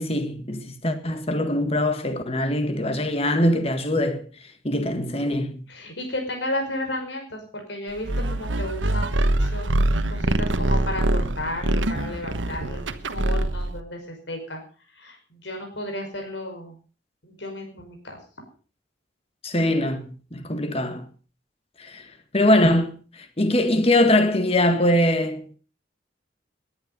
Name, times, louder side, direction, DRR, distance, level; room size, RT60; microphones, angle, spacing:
voice 1, 0.0-4.2 4.6-5.6 19.4-21.1 21.8-22.0 22.3-23.0 23.4-25.6, left 1 dB, 30° left, 1.7 m, -22 dB
voice 2, 5.7-14.6 14.9-16.8 17.2-18.2, left 1 dB, 70° left, 5.3 m, -33 dB
sound 1, 8.0-13.8, right 1 dB, 90° right, 1.2 m, -24 dB
19.0 x 10.5 x 5.4 m
head